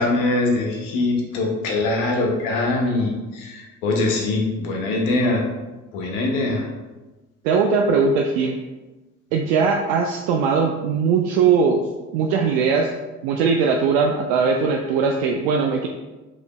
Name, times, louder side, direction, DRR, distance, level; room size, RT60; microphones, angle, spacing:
voice 1, 0.0-5.4 5.9-6.7, left 2 dB, 65° left, 0 dB, 1.0 m, -22 dB
voice 2, 7.4-8.6 9.3-11.8 12.1-12.9 13.2-15.9, right 5 dB, 65° right, 2 dB, 0.5 m, -20 dB
5.0 x 3.7 x 2.3 m, 1.1 s
figure-of-eight pair, 50°, 39 cm